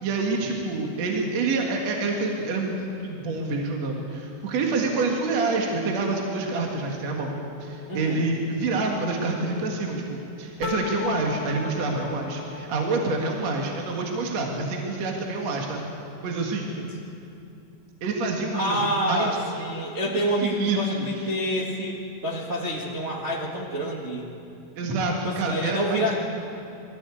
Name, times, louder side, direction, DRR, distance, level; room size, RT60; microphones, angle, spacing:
voice 1, 0.0-7.3 7.6-15.8 16.2-16.7 18.0-19.7 20.4-21.1 24.8-26.1, right 3 dB, 50° right, 0 dB, 2.4 m, -27 dB
Telephone, 4.7-5.8 6.9-8.0 9.2-10.3 11.4-12.5, left 7 dB, 20° right, 5.7 m, -46 dB
voice 2, 7.9-8.3 16.8-16.9 18.5-24.3 25.2-26.1, equal, 80° right, -4 dB, 0.6 m, -28 dB
sound 1, 10.6-13.5, left 7 dB, 75° left, 3.1 m, -36 dB
21.5 x 15.0 x 8.4 m, 2.7 s
omnidirectional pair, 4.7 m